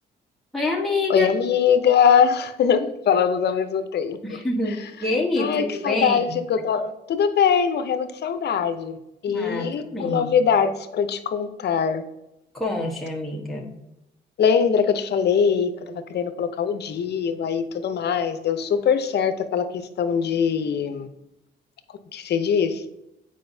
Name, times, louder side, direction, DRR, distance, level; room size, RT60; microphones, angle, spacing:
voice 1, 0.5-1.3 4.2-6.4 9.3-10.3 12.5-13.7, left 2 dB, ahead, -3 dB, 1.2 m, -26 dB
voice 2, 1.1-4.2 5.4-9.0 9.2-12.0 14.4-21.1 22.1-22.8, left 7 dB, 55° left, 10 dB, 0.7 m, -22 dB
7.6 x 5.0 x 2.7 m, 0.87 s
cardioid pair, 90°, 20 cm